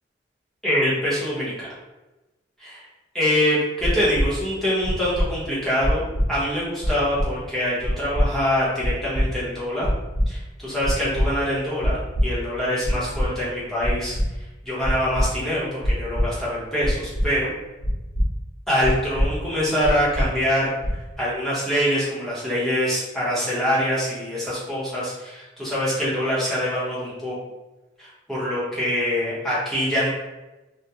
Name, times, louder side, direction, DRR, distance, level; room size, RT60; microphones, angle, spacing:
voice 1, 0.6-1.7 2.6-2.8 3.1-9.9 10.3-12.0 12.2-14.2 14.6-17.5 18.7-20.7 21.2-27.4 28.0-30.1, equal, ahead, -10 dB, 0.8 m, -24 dB
sound 1, 3.8-4.3 4.8-5.3 5.8-6.2 6.8-7.3 7.8-8.2 8.8-9.2 9.8-10.2 10.8-11.3 11.8-12.2 12.8-13.3 13.8-14.3 14.8-15.2 15.8-16.2 16.8-17.3 17.8-18.2 18.8-19.2 19.8-20.2 20.8-21.1, equal, 65° left, 0.8 m, -22 dB
2.3 x 2.1 x 2.8 m, 1.1 s
head